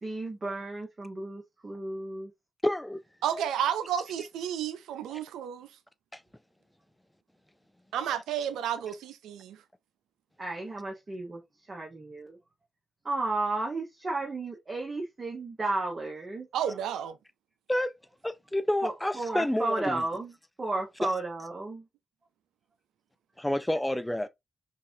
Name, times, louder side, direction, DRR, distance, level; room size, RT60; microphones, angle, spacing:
voice 1, 0.0-2.3 10.4-12.4 13.0-16.8 18.8-21.9, right 2 dB, 40° right, 1.0 m, -33 dB
voice 2, 2.6-3.0 3.3-3.4 5.1-5.2 6.1-6.2 17.7-17.9 18.2-20.0 23.4-24.3, left 1 dB, 10° left, 0.5 m, -29 dB
voice 3, 3.2-5.7 7.9-9.6 16.5-17.2, right 9 dB, 85° right, 0.3 m, -31 dB
3.9 x 2.4 x 2.7 m
supercardioid pair, 45°, 0 cm